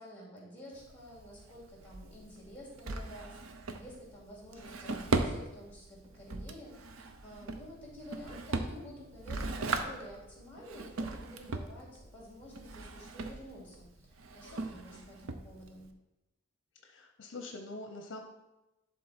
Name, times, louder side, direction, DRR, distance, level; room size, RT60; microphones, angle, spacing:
voice 1, 0.0-15.9, equal, 10° left, -5 dB, 2.7 m, -50 dB
Drawer open or close, 0.7-15.9, right 3 dB, 90° right, 0.7 m, -39 dB
voice 2, 16.8-18.2, left 2 dB, 60° left, 4 dB, 0.7 m, -44 dB
11.0 x 3.8 x 4.3 m, 0.97 s
head